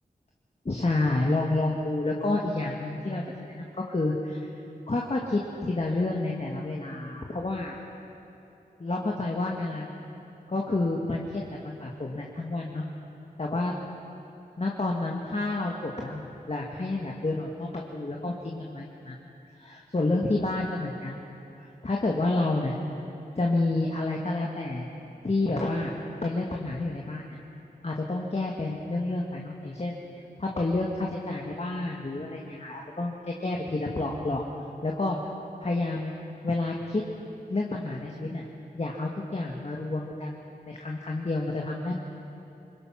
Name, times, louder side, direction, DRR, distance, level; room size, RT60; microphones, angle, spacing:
voice 1, 0.7-3.2 3.5-4.5 4.9-7.8 8.8-10.0 10.5-12.8 13.4-13.7 14.6-19.2 19.5-21.2 21.6-22.7 23.4-24.9 25.2-25.9 26.2-27.4 27.8-30.0 30.4-34.5 34.8-35.2 35.6-36.1 36.4-37.0 37.5-38.4 38.7-40.3 40.7-42.0, left 2 dB, 40° left, -1 dB, 1.9 m, -29 dB
22.5 x 21.0 x 6.0 m, 2.8 s
cardioid pair, 50°, 16 cm